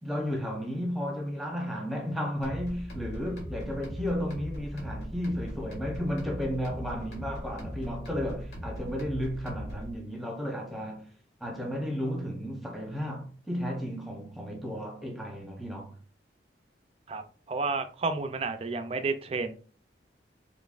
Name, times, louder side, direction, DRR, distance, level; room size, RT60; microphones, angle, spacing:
voice 1, 0.0-11.1 11.4-16.0, equal, ahead, 0.8 m, -33 dB
sound 1, 2.4-9.9, equal, 65° left, 1.7 m, -39 dB
voice 2, 17.5-19.5, right 3 dB, 35° right, 0.4 m, -31 dB
4.0 x 3.1 x 2.4 m
head